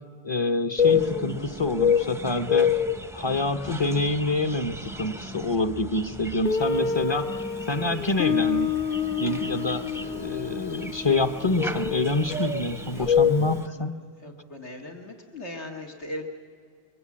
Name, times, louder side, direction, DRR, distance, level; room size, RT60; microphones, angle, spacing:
voice 1, 0.2-2.8 3.1-7.3 7.7-8.7 9.2-14.0, left 2 dB, 25° left, 8 dB, 0.9 m, -27 dB
sound 1, 0.8-13.6, left 6 dB, 5° right, 0.6 m, -28 dB
Guitar, 6.4-13.1, left 6 dB, 55° left, 1.0 m, -30 dB
voice 2, 14.2-16.2, left 1 dB, 80° left, -1 dB, 2.4 m, -38 dB
28.5 x 23.0 x 8.6 m, 2.1 s
omnidirectional pair, 1.1 m